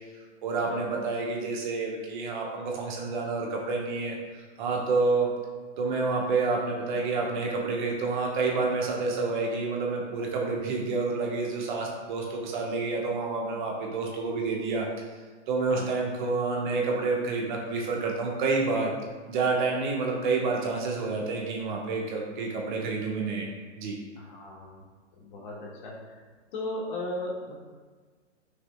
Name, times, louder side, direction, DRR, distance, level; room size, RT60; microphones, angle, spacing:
voice 1, 0.4-4.1 4.6-5.3 5.8-14.8 15.5-18.9 19.3-23.4 23.8-24.0, right 3 dB, 40° right, -1 dB, 1.3 m, -28 dB
voice 2, 24.2-24.7 25.2-26.2 26.5-27.6, left 1 dB, 45° left, -3 dB, 1.9 m, -36 dB
9.4 x 6.0 x 2.3 m, 1.4 s
hypercardioid pair, 145°, 36 cm